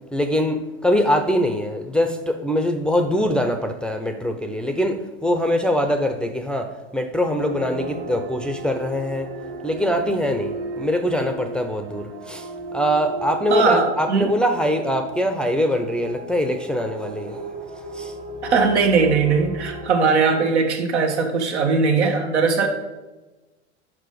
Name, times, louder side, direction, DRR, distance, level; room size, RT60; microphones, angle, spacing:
voice 1, 0.1-9.3 9.6-17.4 17.9-18.1, equal, 5° left, 5 dB, 0.5 m, -23 dB
sound 1, 7.4-19.9, right 2 dB, 55° right, 1.7 m, -35 dB
voice 2, 13.5-14.3 18.4-22.7, right 4 dB, 85° right, 3 dB, 1.2 m, -19 dB
5.6 x 4.9 x 5.0 m, 1.1 s
hypercardioid pair, 95°, 33 cm